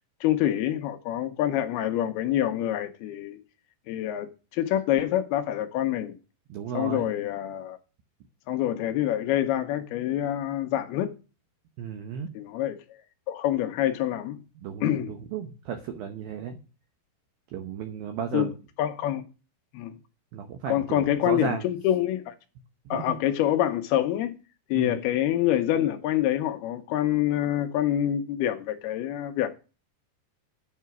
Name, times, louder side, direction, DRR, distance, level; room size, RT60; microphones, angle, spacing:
voice 1, 0.2-3.4 3.9-6.2 6.7-7.8 8.5-11.1 12.3-12.8 13.3-14.4 14.8-15.1 18.3-18.5 18.8-19.2 19.7-19.9 20.7-22.3 22.9-24.3 24.7-29.5, left 12 dB, 85° left, 2.2 m, -26 dB
voice 2, 6.5-7.1 11.8-12.3 14.6-16.6 17.5-18.5 20.3-21.7 22.9-23.0 24.8-25.0, right 7 dB, 85° right, 2.0 m, -34 dB
9.3 x 5.7 x 6.0 m
omnidirectional pair, 5.6 m